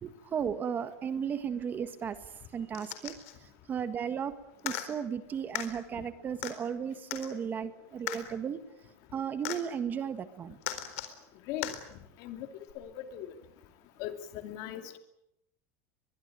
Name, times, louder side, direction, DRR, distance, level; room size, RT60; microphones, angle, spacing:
voice 1, 0.0-2.2 2.5-4.4 4.6-8.6 9.1-10.6, right 7 dB, 25° right, 11 dB, 1.6 m, -35 dB
sound 1, 2.7-3.3 4.6-4.9 5.6-5.7 6.4-6.5 7.1-7.3 8.1-8.2 9.5-9.6 10.6-11.1 11.6-11.8 12.7-12.8, left 14 dB, 75° left, 4.1 m, -36 dB
voice 2, 12.7-13.3 14.0-15.0, left 11 dB, 50° left, 8 dB, 2.8 m, -39 dB
23.5 x 22.0 x 9.1 m, 0.82 s
supercardioid pair, 155°, 8 cm